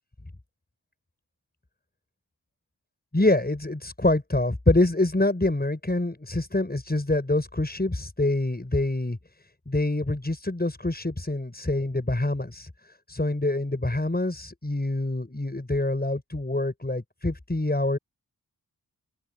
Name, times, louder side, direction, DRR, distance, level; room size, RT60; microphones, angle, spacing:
voice 1, 3.1-9.2 9.7-12.7 13.1-18.0, left 2 dB, 25° left, 6.9 m, -25 dB
open air
cardioid pair, 40°, 37 cm